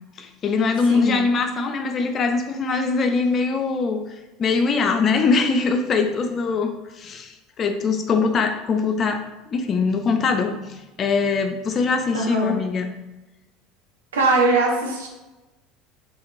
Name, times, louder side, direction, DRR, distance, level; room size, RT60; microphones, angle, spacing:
voice 1, 0.2-9.2 9.5-12.9, left 4 dB, 35° left, 6 dB, 0.3 m, -22 dB
voice 2, 0.9-1.2 12.1-12.5 14.1-15.1, right 2 dB, 75° right, -1 dB, 0.4 m, -21 dB
2.8 x 2.0 x 2.5 m, 1.1 s
figure-of-eight pair, 70°, 0 cm